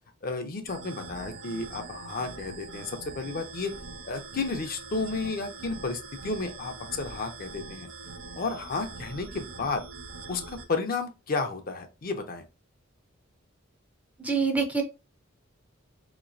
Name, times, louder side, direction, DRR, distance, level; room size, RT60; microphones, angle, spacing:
voice 1, 0.2-3.7 4.0-7.9 8.4-9.8 10.3-12.4, left 3 dB, 45° left, 6 dB, 0.6 m, -32 dB
sound 1, 0.7-10.6, right 4 dB, 65° right, 0.6 m, -43 dB
voice 2, 14.2-14.8, right 5 dB, 10° right, 5 dB, 0.5 m, -25 dB
4.0 x 3.0 x 2.6 m, 0.29 s
head